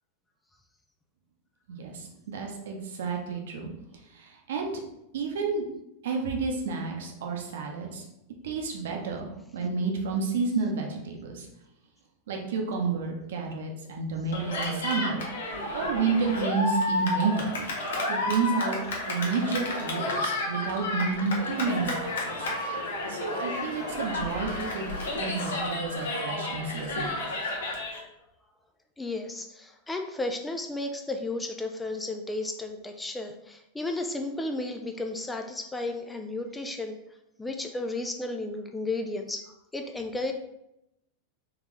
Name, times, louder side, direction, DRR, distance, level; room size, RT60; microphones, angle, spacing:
voice 1, 1.7-3.7 4.1-4.8 5.1-5.6 6.0-8.0 8.4-11.5 12.3-15.2 15.7-17.6 18.1-18.8 19.1-22.5 23.1-24.9 25.1-27.1, right 4 dB, 60° right, 1 dB, 0.8 m, -30 dB
Cheering, 14.3-28.0, left 2 dB, 60° left, 0.9 m, -31 dB
voice 2, 29.0-37.0 37.4-39.4 39.7-40.3, left 2 dB, 10° left, 4 dB, 0.4 m, -33 dB
4.0 x 3.3 x 3.0 m, 0.85 s
figure-of-eight pair, 90°, 0 cm